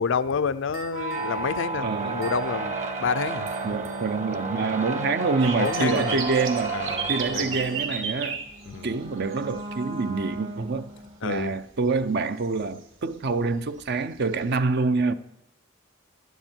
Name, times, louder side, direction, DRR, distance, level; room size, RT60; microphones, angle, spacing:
voice 1, 0.0-2.7 3.0-3.5 5.6-6.2 6.7-7.5 8.7-8.9 11.2-11.5, left 5 dB, 65° left, 0.5 m, -28 dB
sound 1, 0.7-1.4 2.2-2.5 3.5-4.1 5.6-6.4 7.3-8.0, right 7 dB, 90° right, 4.8 m, -44 dB
sound 2, 0.8-11.2, right 3 dB, 40° right, 1.2 m, -32 dB
voice 2, 1.8-2.2 3.6-6.8 7.1-8.4 8.8-10.9 11.2-15.1, right 4 dB, 55° right, 0.6 m, -26 dB
sound 3, 5.4-9.6 9.9-10.2 10.7-10.8 12.0-12.2 12.5-12.6 13.8-13.9 14.5-14.6, right 6 dB, 70° right, 2.7 m, -32 dB
17.5 x 12.0 x 4.5 m
head